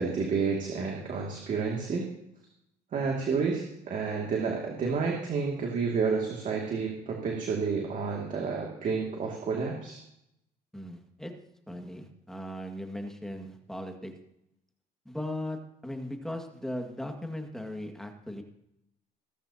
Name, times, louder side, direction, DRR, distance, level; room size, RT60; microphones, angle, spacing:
voice 1, 0.0-2.1 2.9-10.0, right 5 dB, 50° right, -1 dB, 2.4 m, -30 dB
voice 2, 10.7-11.3 11.7-14.1 15.1-15.6 15.8-18.4, left 1 dB, 5° left, 3 dB, 2.0 m, -38 dB
18.0 x 14.0 x 2.9 m, 0.79 s
cardioid pair, 110°, 17 cm